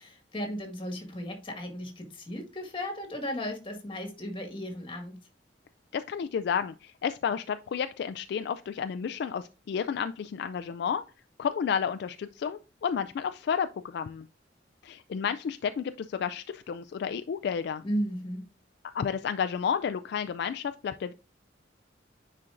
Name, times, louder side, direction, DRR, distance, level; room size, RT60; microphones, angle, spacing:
voice 1, 0.0-5.1 17.8-18.4, equal, 30° left, 3 dB, 1.7 m, -35 dB
voice 2, 5.9-11.0 11.4-14.3 14.8-17.8 18.9-21.1, left 7 dB, 60° left, 10 dB, 0.3 m, -31 dB
9.8 x 4.3 x 2.5 m, 0.33 s
head